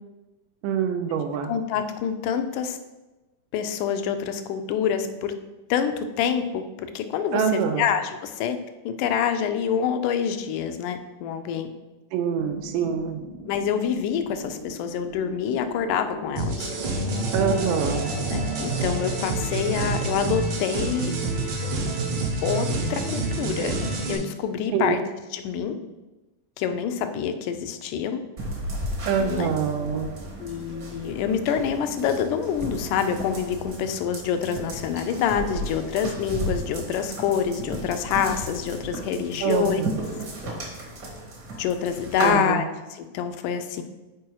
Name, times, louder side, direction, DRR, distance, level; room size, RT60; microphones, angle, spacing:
voice 1, 0.6-1.5 7.3-7.9 12.1-13.2 17.3-18.0 24.7-24.9 29.1-30.1 39.4-39.9 42.2-42.6, right 7 dB, 85° right, 5 dB, 2.3 m, -25 dB
voice 2, 1.5-2.8 3.5-5.3 5.7-8.6 8.9-11.7 13.5-16.7 18.3-21.1 22.4-23.8 24.1-25.0 25.3-25.8 26.6-28.2 29.2-29.5 30.4-39.8 41.6-42.7 42.9-43.8, left 8 dB, 80° left, 8 dB, 2.0 m, -26 dB
sound 1, 12.3-19.2, left 1 dB, 50° left, 0.3 m, -39 dB
sound 2, 16.4-24.2, right 2 dB, 65° right, 2.3 m, -27 dB
sound 3, 28.4-42.3, right 1 dB, 50° right, 1.4 m, -34 dB
6.1 x 4.6 x 4.6 m, 1.1 s
omnidirectional pair, 3.7 m